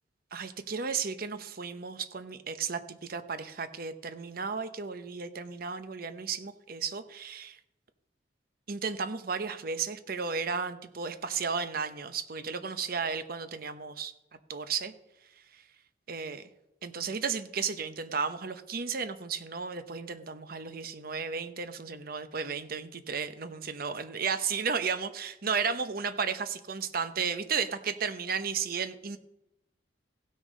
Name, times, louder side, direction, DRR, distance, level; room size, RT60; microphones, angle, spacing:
voice 1, 0.3-7.6 8.7-14.1 14.5-14.9 15.5-15.6 16.1-16.5 16.8-29.2, right 5 dB, 55° right, 10 dB, 0.9 m, -34 dB
16.0 x 6.4 x 5.2 m, 0.86 s
head